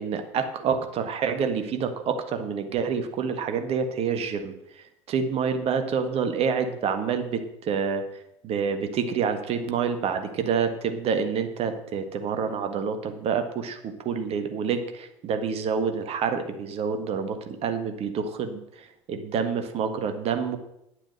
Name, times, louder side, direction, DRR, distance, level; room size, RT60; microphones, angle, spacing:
voice 1, 0.0-4.5 5.1-8.0 8.4-20.6, right 6 dB, 35° right, 7 dB, 1.6 m, -27 dB
10.0 x 8.5 x 6.5 m, 0.80 s
figure-of-eight pair, 70°, 17 cm